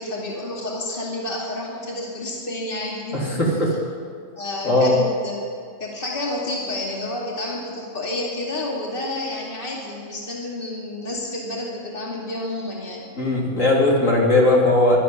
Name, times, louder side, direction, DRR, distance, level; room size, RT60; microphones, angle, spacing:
voice 1, 0.0-3.4 4.4-5.4 5.8-13.1, left 2 dB, 45° left, -3 dB, 2.6 m, -30 dB
voice 2, 3.1-3.7 4.6-4.9 13.1-15.0, left 2 dB, 80° left, -3 dB, 3.3 m, -18 dB
12.0 x 12.0 x 9.6 m, 2.1 s
omnidirectional pair, 1.3 m